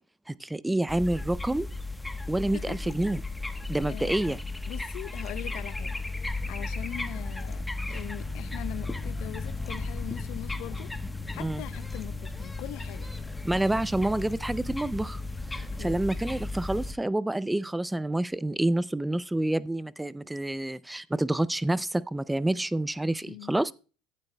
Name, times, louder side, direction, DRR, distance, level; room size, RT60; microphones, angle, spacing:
voice 1, 0.3-1.7 2.3-3.2 3.7-4.4 11.4-11.6 13.4-15.2 15.5-23.7, right 1 dB, 5° right, 0.4 m, -28 dB
sound 1, 0.9-16.9, left 2 dB, 10° left, 1.0 m, -35 dB
voice 2, 2.5-2.9 3.9-4.4 4.7-10.9 11.3-13.1 15.7-16.0 23.2-23.5, left 15 dB, 65° left, 0.7 m, -42 dB
15.5 x 11.5 x 2.2 m
hypercardioid pair, 90°, 0 cm